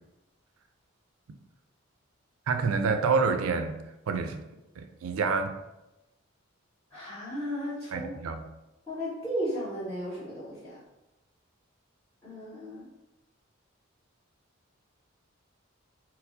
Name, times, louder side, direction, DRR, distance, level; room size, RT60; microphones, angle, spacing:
voice 1, 2.5-3.7 4.1-4.4 4.8-5.5 7.9-8.4, right 4 dB, 80° right, 6 dB, 0.4 m, -27 dB
voice 2, 6.9-8.1 8.9-10.8 12.2-12.9, equal, 15° left, -16 dB, 1.5 m, -35 dB
4.4 x 2.0 x 2.7 m, 0.95 s
head